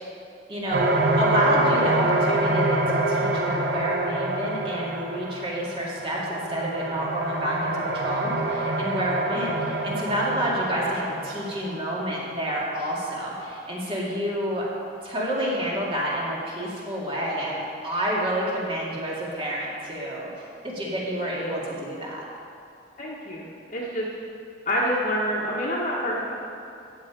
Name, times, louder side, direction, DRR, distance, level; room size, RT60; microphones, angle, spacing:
voice 1, 0.5-0.9 1.2-14.7 15.0-20.3 20.6-22.3, equal, 30° right, -5 dB, 2.5 m, -28 dB
sound 1, 0.7-12.2, right 2 dB, 60° right, 1.0 m, -26 dB
voice 2, 23.0-24.1 24.6-26.3, equal, 40° left, -6 dB, 1.4 m, -27 dB
14.0 x 8.8 x 5.2 m, 2.5 s
head